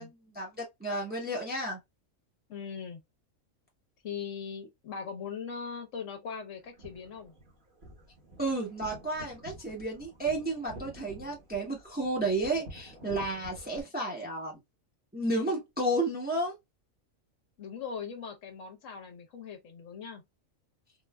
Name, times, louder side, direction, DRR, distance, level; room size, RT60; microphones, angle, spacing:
voice 1, 0.0-1.8 8.4-14.5 15.1-16.5, right 2 dB, 10° right, 0.8 m, -32 dB
voice 2, 2.5-3.0 4.0-7.3 17.6-20.2, left 6 dB, 70° left, 1.2 m, -40 dB
sound 1, 6.6-13.8, right 2 dB, 40° right, 1.3 m, -49 dB
3.8 x 2.5 x 2.2 m
omnidirectional pair, 1.4 m